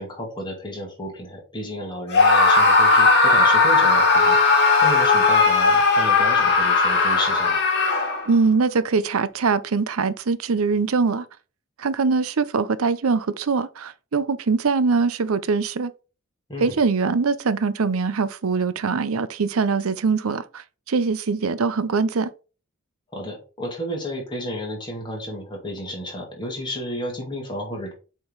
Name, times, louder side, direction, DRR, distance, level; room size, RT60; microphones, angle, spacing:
voice 1, 0.0-7.6 16.5-16.8 23.1-27.9, equal, 20° left, 2.5 m, -32 dB
Screaming, 2.1-8.4, left 3 dB, 50° left, 2.1 m, -17 dB
voice 2, 8.3-11.2 11.8-15.9 16.6-22.3, right 4 dB, 70° right, 0.6 m, -22 dB
7.8 x 3.8 x 4.0 m
head